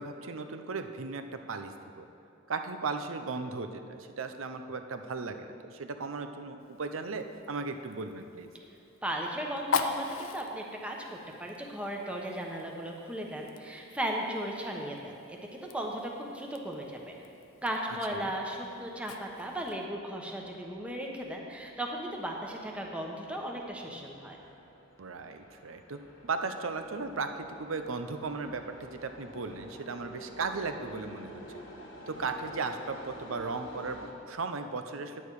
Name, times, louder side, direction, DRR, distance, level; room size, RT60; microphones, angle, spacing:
voice 1, 0.0-2.0 2.5-8.5 18.1-18.3 25.0-31.4 32.1-35.2, right 4 dB, 85° right, 7 dB, 0.7 m, -36 dB
Fire, 6.6-19.9, left 4 dB, 85° left, 0.6 m, -41 dB
voice 2, 9.0-17.1 17.6-24.4, right 1 dB, 5° right, 0 dB, 1.0 m, -36 dB
sound 1, 18.4-34.1, left 1 dB, 65° left, 1.3 m, -51 dB
10.0 x 9.0 x 4.8 m, 2.8 s
head